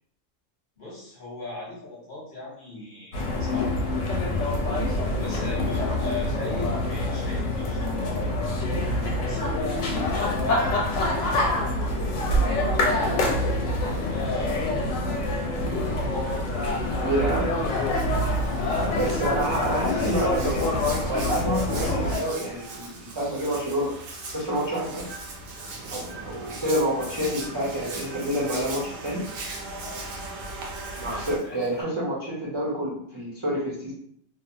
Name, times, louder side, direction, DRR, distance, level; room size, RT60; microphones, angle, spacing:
voice 1, 0.8-3.8 5.2-8.6 9.2-10.8 11.1-13.2 13.8-15.0 15.4-15.7 16.0-16.4 17.9-18.3 29.6-30.1 31.0-31.8, left 2 dB, 45° left, -6 dB, 0.9 m, -38 dB
sound 1, 3.1-22.2, left 1 dB, 70° left, 0.9 m, -26 dB
sound 2, 16.2-31.4, right 2 dB, 65° right, 0.8 m, -42 dB
voice 2, 16.9-17.5 19.0-23.9 24.3-25.1 25.9-29.2 31.0-33.9, equal, 35° right, -8 dB, 0.4 m, -28 dB
Hands, 17.2-31.8, right 3 dB, 90° right, 1.0 m, -41 dB
2.6 x 2.0 x 2.6 m, 0.66 s
omnidirectional pair, 1.4 m